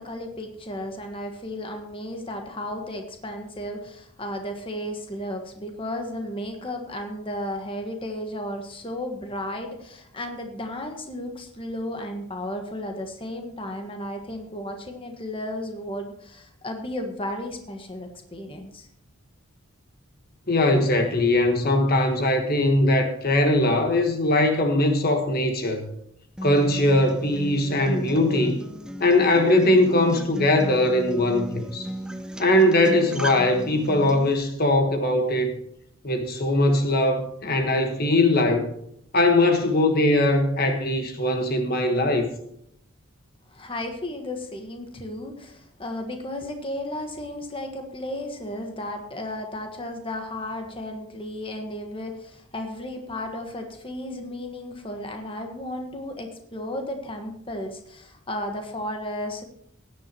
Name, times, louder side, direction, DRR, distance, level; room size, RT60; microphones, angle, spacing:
voice 1, 0.0-18.9 43.5-59.4, left 1 dB, 25° left, 1.4 m, -34 dB
voice 2, 20.5-25.9 26.4-28.6 29.0-31.9 32.4-35.6 36.0-38.7 39.1-42.3, left 1 dB, 45° left, 1.4 m, -21 dB
Acoustic guitar, 26.4-34.4, right 1 dB, 5° right, 0.6 m, -36 dB
16.5 x 11.0 x 3.0 m
head